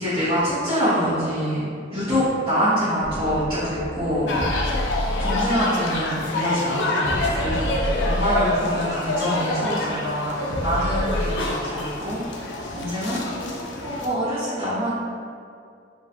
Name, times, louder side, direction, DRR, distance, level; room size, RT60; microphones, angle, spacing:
voice 1, 0.0-4.3 5.2-13.2 13.8-14.9, equal, 25° right, -14 dB, 0.8 m, -25 dB
sound 1, 3.0-8.8 10.5-11.5, equal, 85° left, 0.8 m, -29 dB
sound 2, 4.3-14.1, left 2 dB, 65° left, 0.4 m, -27 dB
4.1 x 2.3 x 2.6 m, 2.3 s
head